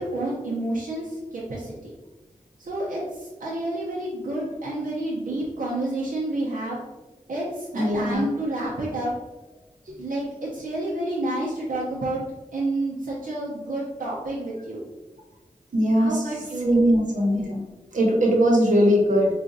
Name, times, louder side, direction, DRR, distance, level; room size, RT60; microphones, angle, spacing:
voice 1, 0.0-1.9 2.6-6.8 7.3-9.1 10.0-12.2 12.5-14.8 16.0-16.8, right 1 dB, 90° right, -6 dB, 0.7 m, -29 dB
voice 2, 7.7-8.3 15.7-16.3 16.6-17.6 17.9-19.3, equal, 70° right, -1 dB, 1.0 m, -20 dB
4.8 x 2.4 x 2.6 m, 1.1 s
wide cardioid pair, 70°, 14 cm